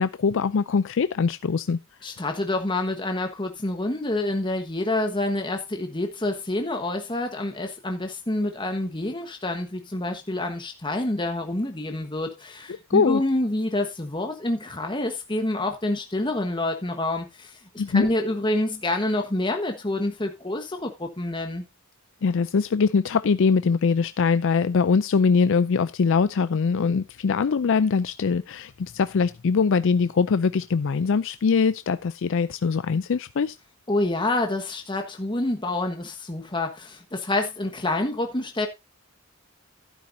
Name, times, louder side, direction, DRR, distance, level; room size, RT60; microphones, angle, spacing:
voice 1, 0.0-1.8 12.9-13.2 17.8-18.1 22.2-33.6, left 5 dB, 60° left, 0.4 m, -22 dB
voice 2, 2.0-21.6 33.9-38.7, left 2 dB, 20° left, 1.3 m, -27 dB
11.5 x 10.0 x 2.7 m
head